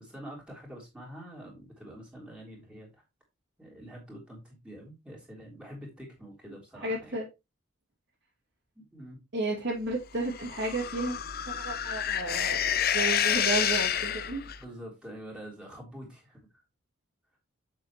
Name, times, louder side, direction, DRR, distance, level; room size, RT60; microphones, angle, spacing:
voice 1, 0.0-2.9 3.6-7.1 8.7-9.2 14.6-16.4, equal, 5° right, -3 dB, 3.5 m, -46 dB
voice 2, 6.8-7.3 9.3-11.2 11.5-14.4, right 2 dB, 55° right, -7 dB, 2.7 m, -32 dB
sound 1, 10.3-14.6, left 9 dB, 45° left, 0.6 m, -29 dB
7.5 x 7.4 x 3.1 m, 0.23 s
head